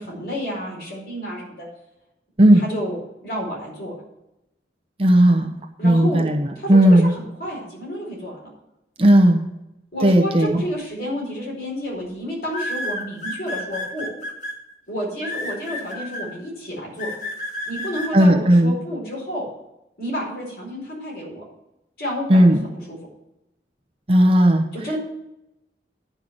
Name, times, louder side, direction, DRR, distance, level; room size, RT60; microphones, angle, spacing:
voice 1, 0.0-1.7 2.6-3.0 3.2-3.9 5.8-6.2 6.5-8.5 9.9-14.1 14.9-17.1 17.7-19.4 20.0-21.4 22.0-22.5 22.9-23.0 24.7-25.0, equal, 60° left, -3 dB, 4.7 m, -30 dB
voice 2, 5.0-5.5 5.8-7.1 9.0-9.5 10.0-10.6 18.1-18.7 22.3-22.6 24.1-24.6, right 1 dB, 30° right, 3 dB, 0.9 m, -15 dB
sound 1, 11.0-11.3 12.5-14.5 15.2-16.3 17.0-18.1, left 1 dB, 45° left, 1.7 m, -30 dB
10.5 x 5.7 x 7.8 m, 0.89 s
head